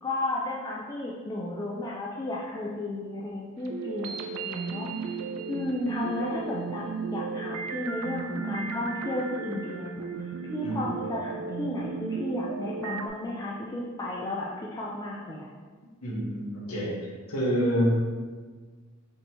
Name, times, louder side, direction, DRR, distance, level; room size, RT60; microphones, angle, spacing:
voice 1, 0.0-5.2 5.5-15.5, left 2 dB, 15° left, -5 dB, 0.3 m, -33 dB
sound 1, 3.6-13.1, right 5 dB, 80° right, 0.4 m, -35 dB
voice 2, 16.0-16.9 17.3-17.9, equal, 90° left, -5 dB, 1.1 m, -27 dB
5.2 x 2.9 x 2.9 m, 1.5 s
head